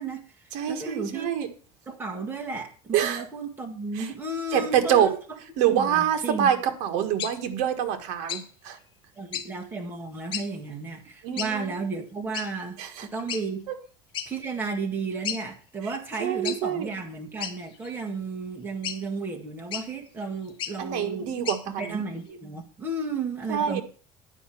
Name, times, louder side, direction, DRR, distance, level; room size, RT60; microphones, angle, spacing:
voice 1, 0.0-0.3 0.7-1.3 1.9-5.2 5.7-6.5 9.2-13.7 14.3-21.3 21.8-23.8, right 3 dB, 15° right, 1 dB, 1.8 m, -33 dB
voice 2, 0.5-1.5 2.9-3.2 3.9-4.1 4.5-5.1 5.6-8.8 11.2-11.8 12.8-13.1 13.7-13.8 16.2-16.9 20.8-22.0 23.5-23.8, right 9 dB, 65° right, 5 dB, 1.7 m, -26 dB
sound 1, 7.2-7.3 8.3-8.5 9.3-9.5 10.3-10.5 11.4-11.5 12.3-12.5 13.3-13.4 14.1-14.3 14.7-14.8 15.2-15.4 16.4-16.6 17.4-17.9 18.8-19.0 19.7-19.9 20.5-20.8 21.4-21.6, left 9 dB, 40° left, 1.2 m, -33 dB
9.9 x 5.1 x 7.6 m, 0.40 s
cardioid pair, 165°, 13 cm